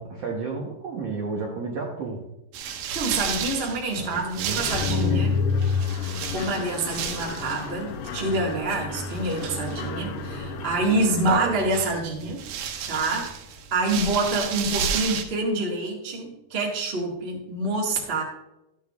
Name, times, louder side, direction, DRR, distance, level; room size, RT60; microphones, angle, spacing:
voice 1, 0.0-2.2 4.0-5.3, right 4 dB, 65° right, -1 dB, 1.5 m, -32 dB
sound 1, 2.5-15.2, right 7 dB, 85° right, 2.8 m, -33 dB
voice 2, 2.9-5.4 6.3-12.5 12.9-13.3 13.7-18.2, right 2 dB, 35° right, -2 dB, 0.9 m, -27 dB
Mechanisms, 4.6-11.3, left 6 dB, 75° left, 2.1 m, -30 dB
12.5 x 8.6 x 2.4 m, 0.90 s
omnidirectional pair, 4.1 m